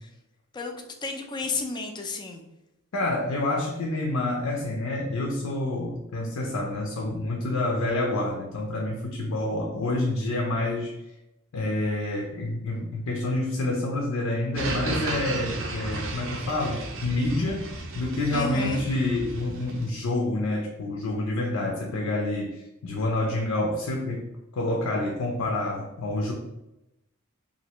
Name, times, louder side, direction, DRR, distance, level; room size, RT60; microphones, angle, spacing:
voice 1, 1.0-2.4 18.3-18.8, left 3 dB, 20° left, 3 dB, 0.4 m, -31 dB
voice 2, 2.9-10.9 11.5-17.6 17.9-24.3 24.5-26.3, left 2 dB, 80° left, 0 dB, 0.5 m, -28 dB
sound 1, 14.5-19.9, right 2 dB, 65° right, 0.5 m, -34 dB
3.1 x 2.5 x 2.9 m, 0.91 s
head